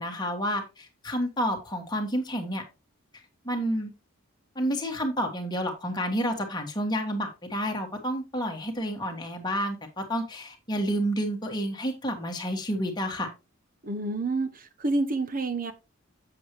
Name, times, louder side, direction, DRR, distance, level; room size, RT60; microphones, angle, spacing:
voice 1, 0.0-2.6 3.4-3.9 4.5-13.3, equal, 20° left, 1.6 m, -30 dB
voice 2, 13.8-15.7, right 2 dB, 40° right, 0.9 m, -28 dB
7.8 x 7.6 x 3.0 m
head